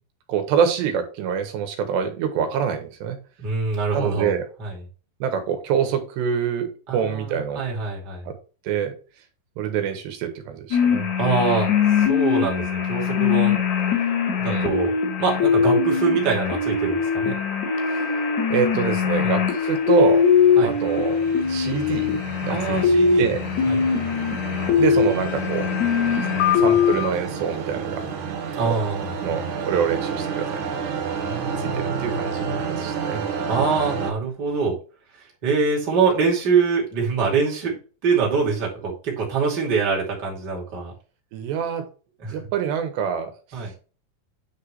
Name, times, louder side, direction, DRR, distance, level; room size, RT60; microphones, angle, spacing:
voice 1, 0.3-3.2 3.9-4.5 5.2-7.6 8.3-8.4 8.7-8.9 9.6-11.1 14.5-14.8 18.5-20.2 20.6-21.2 21.5-22.2 22.5-22.8 23.2-23.4 24.8-25.7 26.6-28.0 29.2-30.9 31.6-33.2 41.3-41.9 42.3-43.3, right 7 dB, 85° right, 6 dB, 3.5 m, -25 dB
voice 2, 3.4-4.3 4.6-4.8 6.9-8.3 11.2-11.7 12.0-13.6 14.4-14.9 15.2-17.4 19.2-19.3 20.6-20.7 22.5-23.3 23.6-24.0 26.3-26.6 28.6-29.4 31.3-32.1 33.5-34.7 35.4-37.8 38.0-40.9 42.2-42.3 43.5-43.7, right 5 dB, 30° right, -2 dB, 2.5 m, -24 dB
sound 1, 10.7-27.1, left 6 dB, 55° left, 2.4 m, -21 dB
sound 2, 20.0-34.1, right 5 dB, 65° right, 2.2 m, -31 dB
9.6 x 5.0 x 3.2 m, 0.35 s
omnidirectional pair, 4.8 m